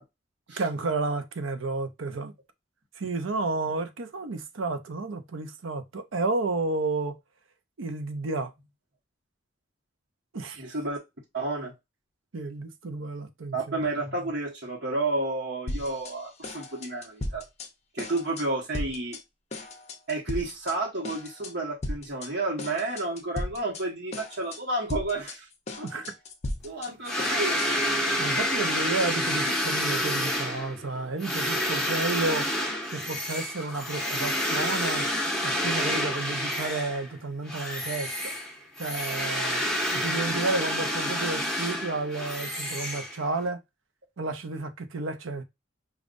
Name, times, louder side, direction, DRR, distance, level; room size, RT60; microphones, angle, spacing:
voice 1, 0.6-2.3 3.0-7.1 7.8-8.5 10.3-10.6 12.3-13.6 25.8-26.1 28.2-32.4 32.9-35.1 35.4-38.3 38.8-39.6 39.9-43.6 44.2-45.4, right 3 dB, 85° right, 0.7 m, -31 dB
voice 2, 10.6-11.0 11.3-11.7 13.5-17.4 17.9-19.2 20.1-25.5 26.6-28.0, right 2 dB, 60° right, 1.2 m, -31 dB
sound 1, 15.7-16.2 16.4-17.7 18.0-18.5 18.7-19.2 19.5-20.8 21.0-21.5 21.8-22.3 22.6-23.8 24.1-24.6 24.9-27.9, left 1 dB, 35° left, 0.7 m, -36 dB
sound 2, 27.0-37.1 37.5-43.5, equal, ahead, 1.2 m, -29 dB
5.2 x 2.5 x 2.5 m
head